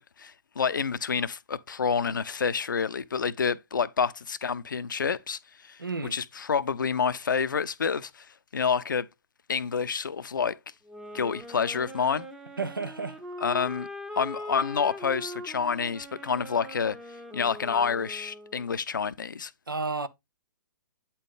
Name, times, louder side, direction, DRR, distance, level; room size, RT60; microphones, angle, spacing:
voice 1, 0.0-5.4 5.6-5.8 6.1-8.3 8.5-9.1 9.5-10.6 11.1-12.3 13.4-13.9 14.2-17.0 17.3-19.5, left 6 dB, 70° left, 0.6 m, -28 dB
voice 2, 5.8-6.2 12.6-13.2 19.7-20.1, right 4 dB, 85° right, 0.7 m, -31 dB
sound 1, 10.9-18.7, left 1 dB, 5° right, 0.7 m, -41 dB
8.7 x 4.2 x 3.6 m
figure-of-eight pair, 120°, 11 cm